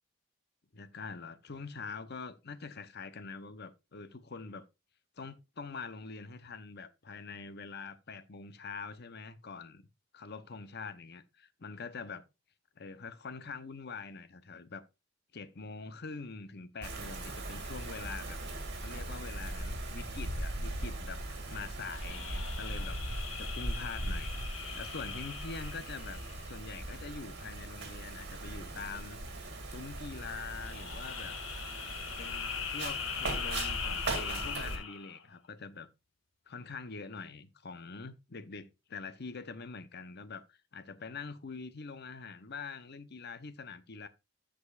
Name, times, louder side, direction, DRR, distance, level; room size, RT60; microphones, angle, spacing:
voice 1, 0.7-4.6 5.2-9.8 10.1-12.3 12.8-14.8 15.3-18.4 18.8-23.0 23.4-24.3 24.7-29.2 29.6-31.4 32.2-35.9 36.5-44.1, left 4 dB, 55° left, 0.9 m, -44 dB
Wind, 16.8-34.8, right 2 dB, 60° right, 2.4 m, -39 dB
sound 1, 21.9-26.7 30.5-35.2, left 7 dB, 80° left, 1.4 m, -41 dB
14.5 x 5.2 x 2.5 m
head